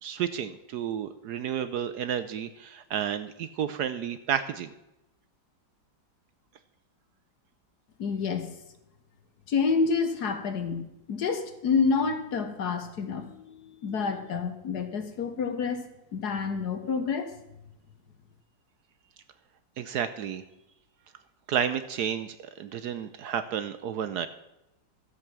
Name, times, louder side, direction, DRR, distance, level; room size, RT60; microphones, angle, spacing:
voice 1, 0.0-4.7 19.8-20.4 21.5-24.3, right 8 dB, 70° right, 11 dB, 1.1 m, -31 dB
voice 2, 8.0-8.5 9.5-15.9 16.1-17.3, left 5 dB, 60° left, 7 dB, 1.6 m, -28 dB
13.0 x 7.9 x 6.1 m, 0.90 s
omnidirectional pair, 2.0 m